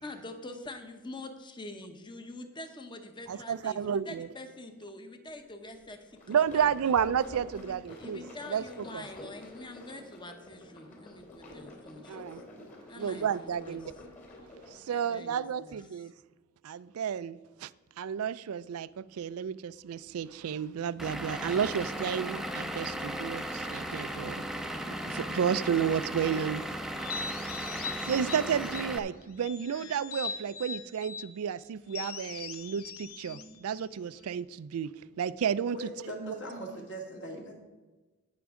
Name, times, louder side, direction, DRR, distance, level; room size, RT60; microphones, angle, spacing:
voice 1, 0.0-6.9 7.5-12.4 12.9-13.8 14.8-15.8, left 2 dB, 20° left, 0.9 m, -45 dB
voice 2, 3.3-4.3 6.3-8.2 8.5-8.6 8.9-9.0 12.1-12.4 13.0-13.9 14.7-16.1 16.6-17.7 18.0-26.6 26.9-27.0 27.3-27.4 27.8-34.9 35.2-35.9 36.2-36.3, right 8 dB, 90° right, 0.4 m, -32 dB
sound 1, 6.0-14.9, left 1 dB, 35° left, 2.8 m, -48 dB
Vehicle / Engine, 21.0-29.0, right 1 dB, ahead, 0.5 m, -36 dB
sound 2, 26.9-29.0 29.4-31.3 31.9-34.4, left 5 dB, 85° left, 1.0 m, -41 dB
voice 3, 35.7-37.5, right 1 dB, 55° left, 2.4 m, -40 dB
17.5 x 6.1 x 3.7 m
head